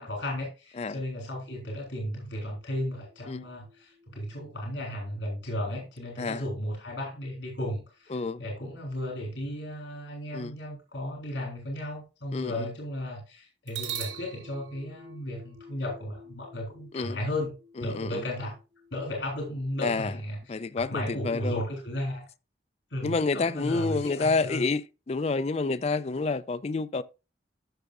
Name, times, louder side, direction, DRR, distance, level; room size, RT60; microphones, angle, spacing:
voice 1, 0.0-17.5 17.8-18.6 18.9-20.6 20.9-22.3 22.9-24.6, left 1 dB, 80° left, 3.5 m, -34 dB
sound 1, 2.5-6.1 13.7-21.5, right 8 dB, 90° right, 2.1 m, -46 dB
voice 2, 8.1-8.4 10.3-10.5 12.3-12.7 16.9-17.2 17.8-18.2 19.8-20.1 20.5-21.6 23.0-27.0, left 3 dB, 35° left, 0.4 m, -29 dB
13.5 x 5.9 x 2.5 m
head